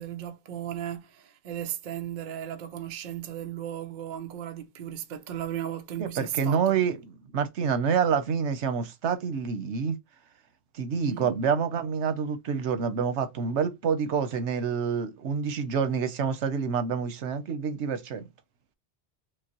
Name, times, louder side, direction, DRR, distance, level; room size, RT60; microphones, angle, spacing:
voice 1, 0.0-6.6 10.9-11.4, right 10 dB, 55° right, 0.6 m, -36 dB
voice 2, 6.0-10.0 10.8-18.3, right 6 dB, 85° right, 1.0 m, -27 dB
5.1 x 2.0 x 2.9 m
omnidirectional pair, 1.2 m